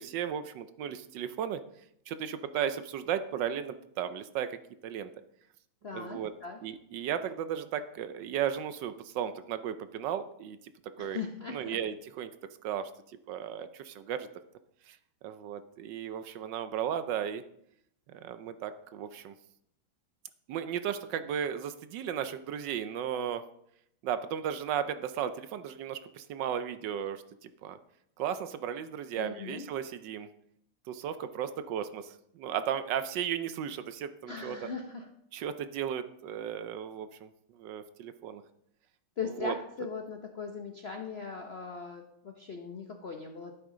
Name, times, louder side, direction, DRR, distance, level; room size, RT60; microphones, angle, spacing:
voice 1, 0.0-1.6 2.1-4.6 4.8-5.1 5.9-6.3 6.6-10.6 11.0-11.2 11.5-12.3 12.6-12.9 13.3-14.3 14.9-15.0 15.2-17.4 18.1-19.3 20.5-23.4 24.0-27.8 28.2-30.3 30.9-34.6 35.3-38.4 39.4-39.5, right 9 dB, 70° right, 12 dB, 1.1 m, -35 dB
voice 2, 5.8-6.6 11.0-11.8 29.2-29.7 34.3-35.1 39.2-43.5, left 5 dB, 75° left, 3 dB, 0.5 m, -39 dB
11.5 x 9.3 x 3.8 m, 0.75 s
omnidirectional pair, 2.4 m